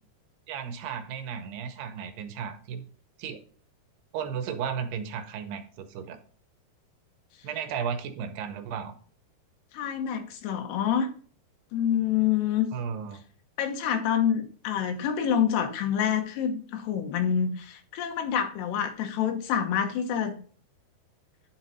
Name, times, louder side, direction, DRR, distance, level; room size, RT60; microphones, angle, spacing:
voice 1, 0.5-2.8 3.2-3.4 4.1-6.2 7.4-9.0 12.7-13.2, right 7 dB, 85° right, 8 dB, 3.0 m, -34 dB
voice 2, 9.7-11.1 11.7-12.7 13.6-20.4, left 8 dB, 85° left, 5 dB, 3.3 m, -27 dB
10.5 x 6.2 x 4.1 m, 0.42 s
omnidirectional pair, 4.7 m